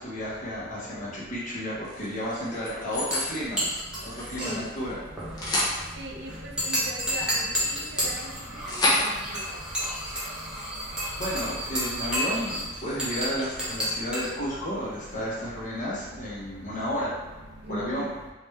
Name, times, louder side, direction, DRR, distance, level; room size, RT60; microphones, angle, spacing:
voice 1, 0.0-3.6 4.0-5.0 11.2-17.1 17.7-18.1, equal, 40° left, -9 dB, 1.4 m, -32 dB
sound 1, 1.8-3.3 3.7-4.9 5.2-5.8 6.6-11.6 12.0-12.2 12.5-14.1, left 1 dB, 20° left, 0.8 m, -32 dB
sound 2, 2.9-15.3, equal, 5° right, 0.9 m, -32 dB
voice 2, 5.9-9.4 17.6-18.1, right 1 dB, 60° right, 0 dB, 0.6 m, -39 dB
3.3 x 3.2 x 3.2 m, 1.2 s
head